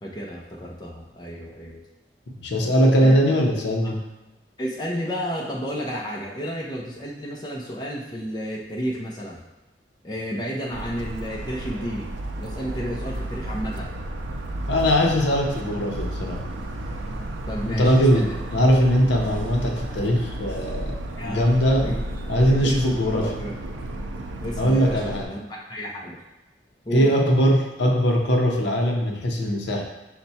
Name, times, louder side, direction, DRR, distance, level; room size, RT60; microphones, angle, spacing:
voice 1, 0.0-1.8 3.0-3.4 4.6-9.4 10.0-12.1 12.4-13.9 17.5-18.4 21.2-22.1 22.6-23.5 24.4-26.2 26.8-27.1, equal, 20° left, -3 dB, 0.6 m, -32 dB
voice 2, 2.4-4.1 14.7-16.5 17.6-21.0 21.3-22.0 22.3-23.3 24.6-25.3 26.9-29.8, equal, 65° left, 1 dB, 0.7 m, -20 dB
Motor vehicle (road) / Siren, 10.7-25.2, right 1 dB, 80° right, 0.5 m, -32 dB
5.8 x 2.2 x 4.1 m, 1.1 s
head